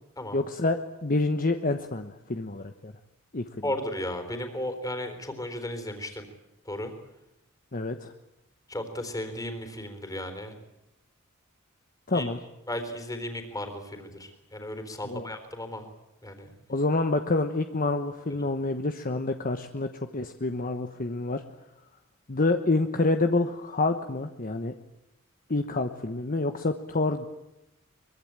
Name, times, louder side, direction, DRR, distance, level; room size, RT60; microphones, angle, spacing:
voice 1, 0.3-2.9 3.3-3.4 7.7-8.1 12.1-12.4 15.1-15.3 16.7-21.4 22.3-24.7 25.5-27.3, left 2 dB, 40° left, 7 dB, 1.2 m, -27 dB
voice 2, 3.6-6.3 6.7-6.9 8.7-10.5 12.1-12.3 12.7-15.9 16.2-16.5, left 1 dB, 15° left, 7 dB, 3.8 m, -35 dB
23.5 x 23.0 x 8.9 m, 0.90 s
head